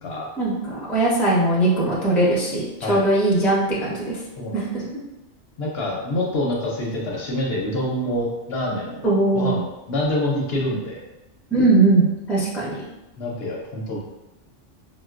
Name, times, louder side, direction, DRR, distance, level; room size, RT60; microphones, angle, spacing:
voice 1, 0.4-4.2 4.5-4.8 9.0-9.6 11.5-12.8, right 2 dB, ahead, -6 dB, 0.5 m, -20 dB
voice 2, 5.6-9.0 9.3-11.0 13.2-14.0, left 1 dB, 65° left, -2 dB, 0.7 m, -26 dB
4.4 x 2.1 x 2.4 m, 0.98 s
omnidirectional pair, 1.3 m